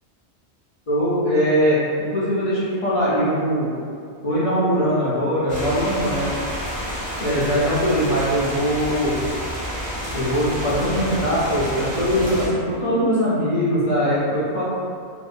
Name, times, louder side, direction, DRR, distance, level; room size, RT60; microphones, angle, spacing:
voice 1, 0.9-3.7 4.2-6.3 7.2-9.2 10.1-14.6, equal, 55° left, -9 dB, 0.4 m, -21 dB
sound 1, 5.5-12.5, equal, 10° right, 0.5 m, -29 dB
2.7 x 2.1 x 2.4 m, 2.2 s
omnidirectional pair, 1.1 m